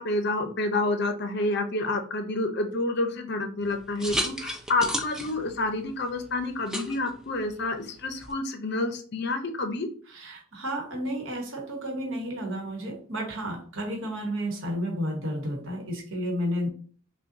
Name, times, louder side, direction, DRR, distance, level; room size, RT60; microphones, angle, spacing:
voice 1, 0.0-9.9, left 2 dB, 50° left, 6 dB, 0.6 m, -29 dB
Pouring Martini, 3.6-8.3, equal, 5° right, 0.4 m, -36 dB
voice 2, 10.1-16.7, equal, 65° right, 1 dB, 1.1 m, -32 dB
5.4 x 2.2 x 2.6 m, 0.44 s
head